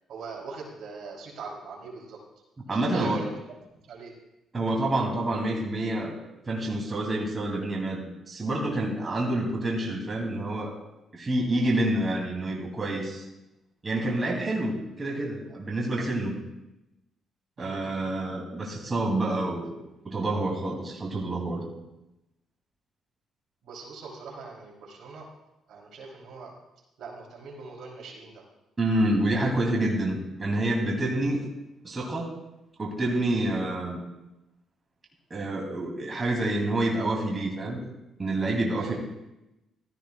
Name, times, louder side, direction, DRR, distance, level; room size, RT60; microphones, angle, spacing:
voice 1, 0.1-2.2 2.7-3.3 3.9-4.1 17.6-17.8 23.6-25.3 25.7-26.5 27.0-28.4 38.8-38.9, right 4 dB, 70° right, -1 dB, 3.1 m, -41 dB
voice 2, 2.7-3.2 4.5-6.1 6.5-10.7 11.1-13.3 13.8-16.4 17.6-19.8 20.0-21.6 28.8-31.4 31.8-32.3 32.8-34.0 35.3-37.8 38.2-38.9, right 1 dB, 30° right, -2 dB, 2.6 m, -28 dB
15.5 x 13.0 x 2.3 m, 0.94 s
cardioid pair, 90°, 0 cm